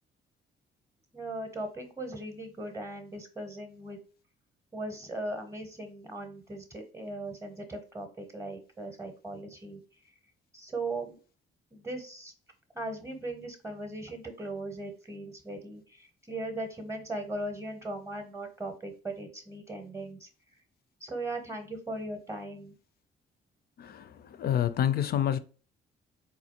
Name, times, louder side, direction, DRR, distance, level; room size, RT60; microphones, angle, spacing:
voice 1, 1.1-4.0 4.7-9.8 10.5-11.1 11.7-12.3 12.7-20.3 21.0-22.7, right 2 dB, 15° right, 0.7 m, -38 dB
voice 2, 23.8-24.1 24.4-25.4, left 10 dB, 50° left, 0.4 m, -27 dB
4.1 x 2.3 x 2.8 m
cardioid pair, 90°, 20 cm